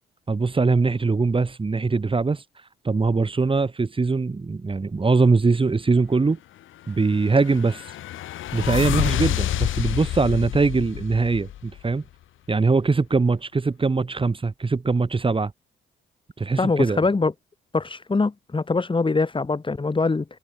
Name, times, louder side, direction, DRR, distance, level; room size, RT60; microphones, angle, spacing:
voice 1, 0.3-2.4 2.8-6.4 6.9-7.9 8.5-12.0 12.5-15.5 16.4-17.0, right 4 dB, 25° right, 4.0 m, -22 dB
sound 1, 7.0-11.9, left 13 dB, 80° left, 6.6 m, -28 dB
voice 2, 16.6-17.3 17.7-20.3, left 3 dB, 25° left, 6.7 m, -23 dB
cardioid pair, 90°, 20 cm